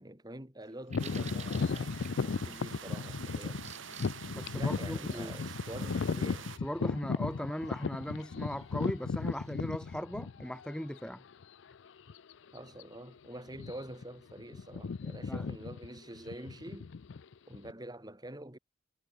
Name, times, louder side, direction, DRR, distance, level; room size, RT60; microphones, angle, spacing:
voice 1, 0.0-2.0 2.2-3.6 4.5-6.5 12.5-16.9 17.5-18.6, right 1 dB, 20° right, 5.0 m, -46 dB
Bird vocalization bird call bird song, 0.6-10.0, right 7 dB, 40° right, 6.2 m, -56 dB
sound 1, 0.9-10.7 11.3-11.4 12.1-12.3 12.6-12.8 13.5-14.0 14.3-17.7, left 4 dB, 70° left, 0.5 m, -35 dB
sound 2, 1.0-6.6, right 7 dB, 90° right, 1.3 m, -46 dB
voice 2, 4.3-5.3 6.6-11.2 15.3-15.5, equal, 5° left, 1.6 m, -38 dB
head